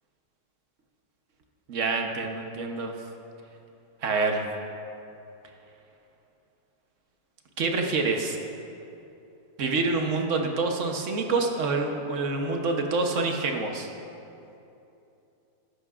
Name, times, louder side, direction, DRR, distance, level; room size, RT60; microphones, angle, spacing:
voice 1, 1.7-2.9 4.0-4.5 7.6-8.4 9.6-13.9, right 3 dB, 55° right, 3 dB, 1.1 m, -27 dB
14.0 x 12.0 x 2.4 m, 2.8 s
omnidirectional pair, 1.8 m